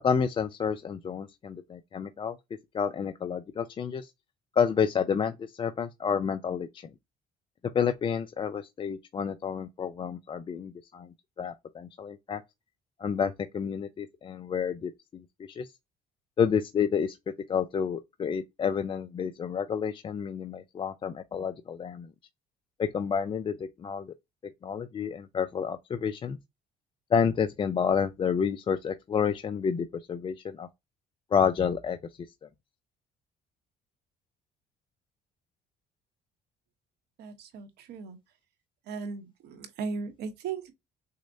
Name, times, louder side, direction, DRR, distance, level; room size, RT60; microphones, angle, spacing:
voice 1, 0.0-2.4 2.7-4.1 4.6-6.9 7.7-11.1 11.4-12.4 13.0-15.7 16.4-17.2 17.5-22.1 22.8-24.1 24.6-26.4 27.1-30.7 31.3-32.0, left 7 dB, 30° left, 0.4 m, -29 dB
voice 2, 37.2-38.2 38.9-40.7, right 5 dB, 75° right, 1.0 m, -37 dB
6.3 x 2.1 x 2.6 m
cardioid pair, 110°, 17 cm